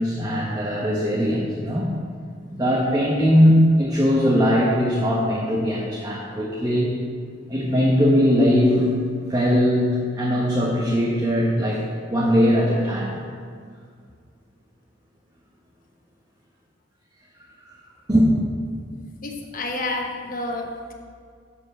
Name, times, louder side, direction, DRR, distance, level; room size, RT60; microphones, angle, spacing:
voice 1, 0.0-1.9 2.5-7.0 7.5-8.9 9.3-11.8 12.1-13.2 18.1-18.3, equal, 20° right, -5 dB, 1.1 m, -20 dB
voice 2, 19.2-20.9, left 2 dB, 45° left, 1 dB, 1.0 m, -29 dB
7.6 x 7.0 x 6.2 m, 2.1 s
head